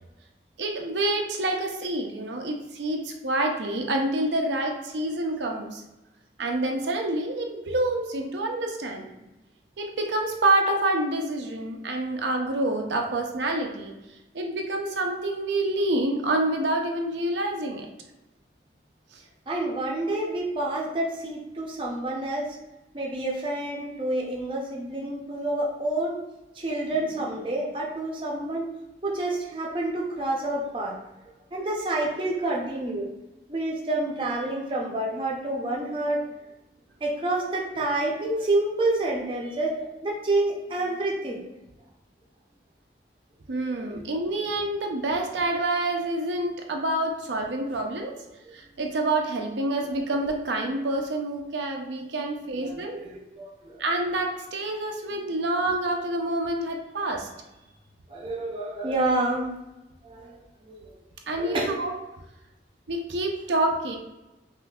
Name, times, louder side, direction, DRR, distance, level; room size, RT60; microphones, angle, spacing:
voice 1, 0.6-5.8 6.4-9.1 9.8-13.9 14.3-17.9 43.5-48.2 48.5-53.0 53.8-57.3 61.3-62.0 62.9-64.0, right 2 dB, 85° right, 2 dB, 0.6 m, -27 dB
voice 2, 19.5-22.6 22.9-26.2 26.6-28.7 29.0-31.0 31.5-33.1 33.5-36.3 37.0-39.8 40.0-41.4 43.7-44.1 48.4-48.5 52.6-53.8 58.1-59.5 60.0-60.4 60.7-60.8 61.4-61.8, right 2 dB, 30° right, -2 dB, 0.6 m, -28 dB
5.5 x 2.5 x 2.3 m, 0.98 s
head